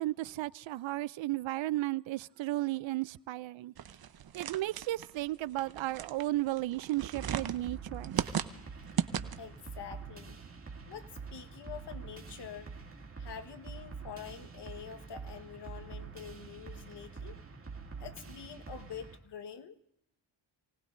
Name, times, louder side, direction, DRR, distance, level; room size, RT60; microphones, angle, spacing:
voice 1, 0.0-3.7 4.3-8.1, right 17 dB, 70° right, 0.5 m, -34 dB
sound 1, 3.8-9.6, right 9 dB, 50° right, 0.9 m, -37 dB
sound 2, 7.2-19.2, right 5 dB, 25° right, 2.2 m, -46 dB
voice 2, 9.4-10.4 10.9-12.7 13.2-17.4 18.0-19.8, left 7 dB, 55° left, 1.4 m, -46 dB
28.0 x 18.5 x 2.6 m
cardioid pair, 95°, 48 cm